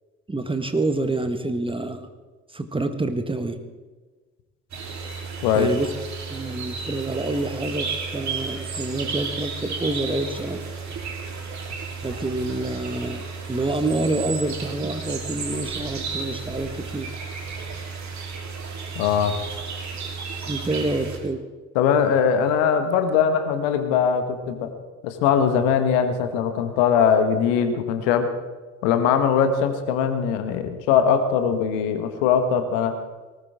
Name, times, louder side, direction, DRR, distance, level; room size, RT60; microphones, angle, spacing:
voice 1, 0.3-2.1 2.5-3.6 5.5-5.9 6.3-10.6 12.0-17.1 20.5-21.4, right 2 dB, 15° right, 8 dB, 1.5 m, -27 dB
sound 1, 4.7-21.2, right 5 dB, 45° right, 3.6 m, -33 dB
voice 2, 18.9-19.3 21.7-24.7 25.0-28.3 28.8-33.0, left 7 dB, 65° left, 8 dB, 1.5 m, -21 dB
19.5 x 18.5 x 3.7 m, 1.3 s
figure-of-eight pair, 45°, 38 cm